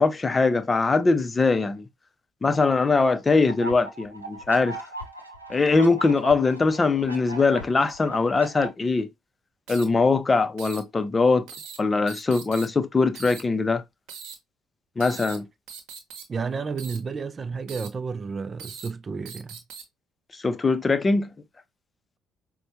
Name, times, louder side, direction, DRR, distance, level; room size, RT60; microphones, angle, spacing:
voice 1, 0.0-1.9 2.4-4.8 5.5-9.1 9.7-11.5 11.8-13.8 15.0-15.5 20.3-21.3, left 3 dB, 25° left, 0.5 m, -22 dB
sound 1, 3.5-8.7, right 1 dB, 85° right, 0.5 m, -39 dB
sound 2, 7.9-8.0 9.7-9.8 10.6-10.8 11.5-11.8 12.1-12.7 13.2-13.4 14.1-14.3 15.0-15.4 15.7-16.2 16.8-17.0 17.7-17.9 18.6-18.9 19.3-19.8, right 6 dB, 60° right, 0.9 m, -40 dB
voice 2, 16.3-19.6, right 5 dB, 35° right, 0.4 m, -31 dB
5.2 x 2.2 x 2.8 m
figure-of-eight pair, 50°, 0 cm